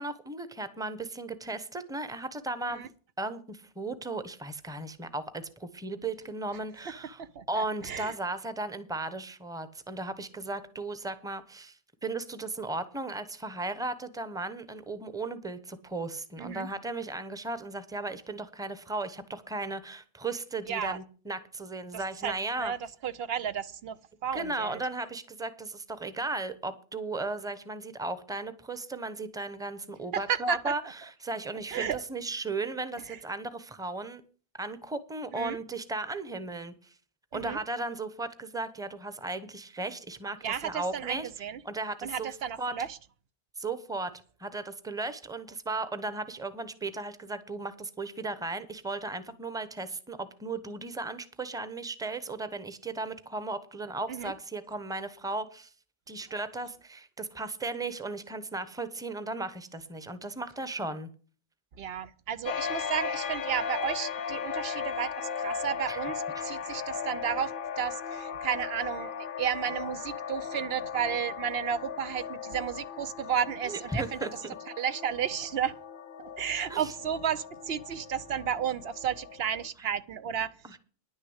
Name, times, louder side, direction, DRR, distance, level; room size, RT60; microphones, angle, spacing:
voice 1, 0.0-2.8 3.2-7.2 7.5-22.7 24.3-34.2 34.6-36.9 37.3-41.3 41.6-42.3 42.6-42.7 43.6-44.1 44.4-55.7 56.1-61.1 65.9-66.0 66.3-66.4 73.6-74.3 76.7-76.9 80.6-80.8, right 2 dB, 5° right, 0.8 m, -36 dB
voice 2, 7.2-8.1 16.4-16.7 20.7-21.0 21.9-22.8 23.0-24.8 30.1-30.7 31.7-32.0 33.1-33.2 35.3-35.6 37.3-37.6 40.4-41.6 42.0-43.0 54.1-54.3 61.8-74.4 74.8-75.7 76.2-80.8, right 8 dB, 75° right, 0.9 m, -33 dB
sound 1, 62.5-79.7, left 7 dB, 60° left, 0.8 m, -37 dB
10.5 x 6.4 x 8.0 m
omnidirectional pair, 1.0 m